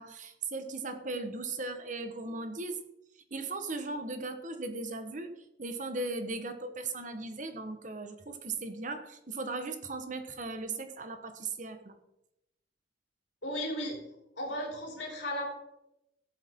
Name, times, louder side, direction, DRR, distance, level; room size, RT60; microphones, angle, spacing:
voice 1, 0.0-2.8 3.3-12.0, right 3 dB, 45° right, 8 dB, 1.2 m, -37 dB
voice 2, 13.4-14.0 14.4-15.4, equal, 80° left, -1 dB, 3.8 m, -35 dB
18.0 x 7.9 x 3.7 m, 0.88 s
head